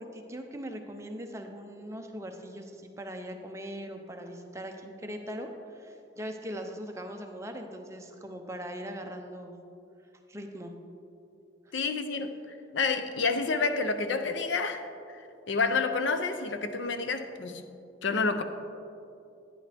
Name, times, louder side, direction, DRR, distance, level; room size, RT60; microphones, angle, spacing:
voice 1, 0.0-9.6 10.3-10.7 11.7-11.8, equal, 15° right, 0.6 m, -40 dB
voice 2, 11.7-12.4 12.7-15.2 15.5-17.6 18.0-18.4, left 4 dB, 70° left, 0.6 m, -29 dB
11.0 x 10.0 x 3.4 m
head